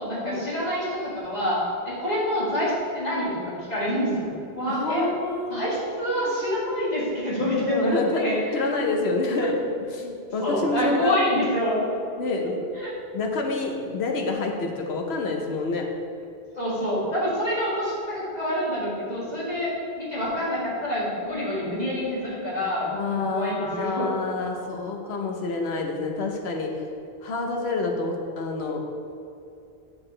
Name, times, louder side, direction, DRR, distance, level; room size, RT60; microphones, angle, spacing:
voice 1, 0.0-5.1 5.5-8.6 9.4-9.5 10.4-11.9 12.7-12.9 16.6-24.1, equal, 40° left, -8 dB, 2.0 m, -27 dB
voice 2, 4.7-5.8 6.0-6.3 7.7-8.2 8.5-9.5 9.9-11.2 11.9-12.6 13.1-15.9 22.8-26.7 27.2-28.8, left 3 dB, 90° left, 2 dB, 1.1 m, -28 dB
9.6 x 4.7 x 3.2 m, 2.6 s
omnidirectional pair, 1.0 m